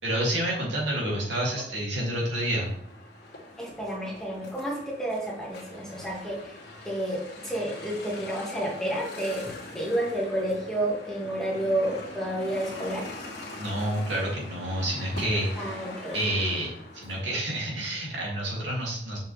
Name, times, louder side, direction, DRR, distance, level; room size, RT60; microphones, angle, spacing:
voice 1, 0.0-2.7 13.6-15.7 16.1-19.2, right 1 dB, 80° right, -4 dB, 2.8 m, -29 dB
sound 1, 2.3-17.2, left 2 dB, 60° left, 2.2 m, -43 dB
voice 2, 3.6-6.6 6.8-13.1 15.6-16.3, right 1 dB, 5° left, -4 dB, 1.8 m, -30 dB
7.1 x 5.8 x 3.4 m, 0.72 s
head